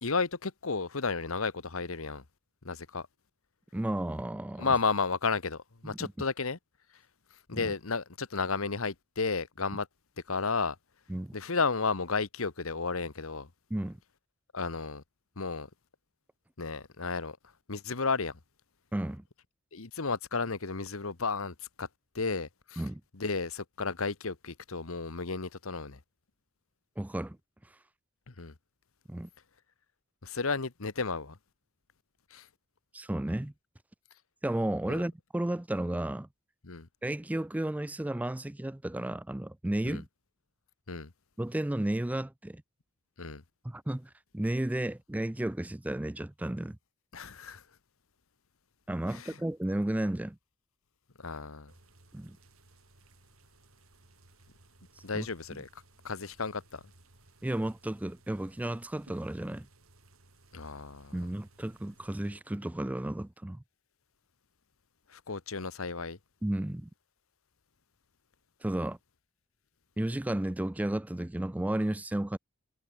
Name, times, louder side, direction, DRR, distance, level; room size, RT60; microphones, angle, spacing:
voice 1, 0.0-2.2 2.6-3.1 4.6-6.6 7.5-9.9 10.3-10.8 11.3-13.5 14.5-15.0 15.4-15.7 16.6-17.4 17.7-18.4 19.7-21.9 22.1-22.8 23.1-26.0 28.3-28.5 30.2-31.4 32.3-32.5 34.9-35.0 36.6-36.9 39.9-40.0 40.9-41.1 43.2-43.4 47.1-47.6 49.1-49.3 51.2-51.7 55.0-55.7 56.0-56.8 60.5-61.3 65.1-66.2, left 4 dB, 80° left, 1.3 m, -33 dB
voice 2, 3.7-4.7 5.8-6.1 7.5-7.7 11.1-11.3 13.7-14.0 18.9-19.2 22.8-23.0 27.0-27.4 29.1-29.3 32.9-33.5 34.4-36.3 37.0-40.1 41.4-42.6 43.6-46.8 48.9-50.4 52.1-52.4 55.1-55.3 57.4-59.7 61.1-63.6 66.4-66.9 68.6-69.0 70.0-72.4, right 1 dB, 5° right, 0.3 m, -33 dB
sound 1, 51.7-62.4, right 2 dB, 85° right, 3.5 m, -61 dB
head